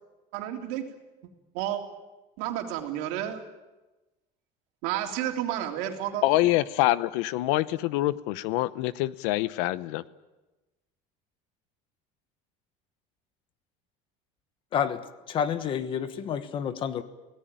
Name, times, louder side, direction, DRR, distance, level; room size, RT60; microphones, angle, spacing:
voice 1, 0.3-0.8 1.5-1.8 2.4-3.4 4.8-6.2, right 12 dB, 70° right, 3.4 m, -31 dB
voice 2, 6.2-10.0, left 16 dB, 75° left, 0.9 m, -25 dB
voice 3, 14.7-17.0, left 8 dB, 30° left, 1.2 m, -29 dB
26.0 x 18.0 x 9.2 m
cardioid pair, 175°, 16 cm